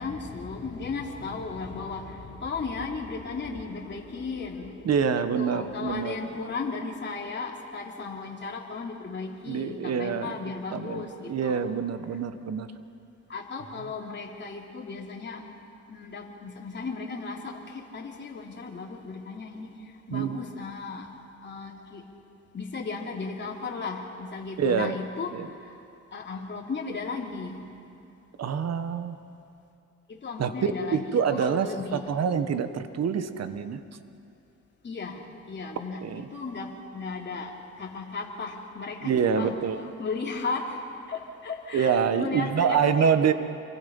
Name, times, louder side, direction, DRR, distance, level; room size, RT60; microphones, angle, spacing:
voice 1, 0.0-11.6 13.3-15.4 15.9-19.7 20.1-21.1 21.4-22.0 22.5-25.3 25.6-25.8 26.1-27.6 30.1-32.0 34.8-43.3, left 4 dB, 35° left, -1 dB, 3.1 m, -35 dB
voice 2, 4.8-6.2 9.5-10.3 10.7-12.7 20.1-20.4 24.6-25.0 25.3-25.5 28.4-29.2 30.4-30.5 30.9-33.8 36.0-36.3 39.0-39.8 41.7-43.3, right 7 dB, 55° right, 10 dB, 1.4 m, -26 dB
27.5 x 24.0 x 5.5 m, 2.6 s
cardioid pair, 90°, 30 cm